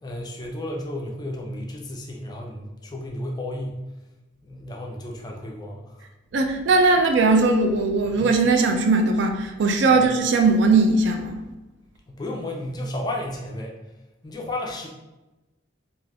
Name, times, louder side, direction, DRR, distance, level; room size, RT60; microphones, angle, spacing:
voice 1, 0.0-3.8 4.4-6.1 9.9-10.1 12.1-13.8 14.2-14.9, left 1 dB, 20° left, 0 dB, 0.4 m, -33 dB
voice 2, 6.3-11.4, right 3 dB, 60° right, 4 dB, 0.3 m, -19 dB
2.4 x 2.3 x 3.3 m, 1.1 s
head